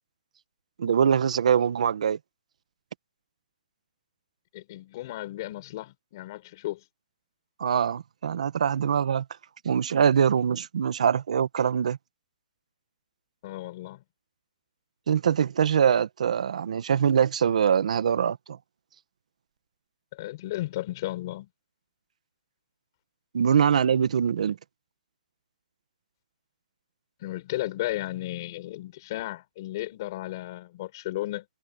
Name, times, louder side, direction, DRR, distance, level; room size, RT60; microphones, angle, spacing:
voice 1, 0.8-2.2 7.6-9.2 9.6-12.0 15.1-18.6 23.3-24.6, right 8 dB, 50° right, 1.3 m, -23 dB
voice 2, 4.5-6.8 13.4-14.0 20.1-21.5 27.2-31.5, left 16 dB, 25° left, 6.4 m, -34 dB
hypercardioid pair, 180°, 5 cm